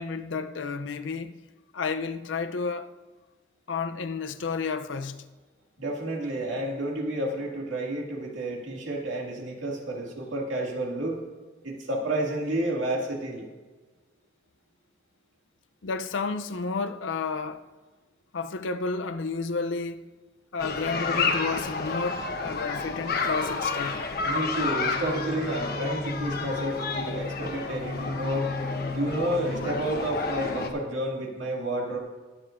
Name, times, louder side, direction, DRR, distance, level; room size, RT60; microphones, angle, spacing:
voice 1, 0.0-1.3 1.7-2.9 3.7-5.2 15.8-17.6 18.3-20.0 20.5-24.0, left 4 dB, 70° left, 0.6 m, -31 dB
voice 2, 5.8-11.2 11.6-13.5 24.2-28.5 28.9-32.0, right 1 dB, 80° right, 2.2 m, -30 dB
sound 1, 20.6-30.7, left 4 dB, 55° left, 1.0 m, -30 dB
21.5 x 7.8 x 2.6 m
head